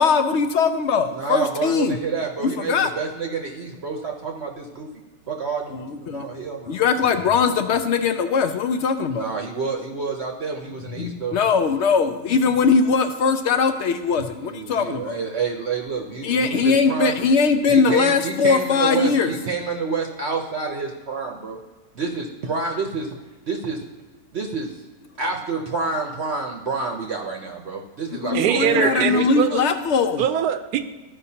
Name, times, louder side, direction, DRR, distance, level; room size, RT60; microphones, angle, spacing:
voice 1, 0.0-2.0 2.7-2.9 5.7-6.3 6.7-9.3 11.0-15.2 16.2-19.3 28.2-30.2, left 5 dB, 65° left, 8 dB, 0.7 m, -20 dB
voice 2, 1.1-4.9 5.3-6.8 9.1-11.4 14.4-17.1 17.7-21.6 22.0-23.1 23.5-23.8 24.3-24.7 25.2-29.3, right 4 dB, 55° right, 1 dB, 0.9 m, -28 dB
voice 3, 28.3-29.6 30.2-30.8, right 10 dB, 90° right, 10 dB, 1.1 m, -22 dB
13.5 x 5.4 x 2.8 m, 1.3 s
omnidirectional pair, 1.6 m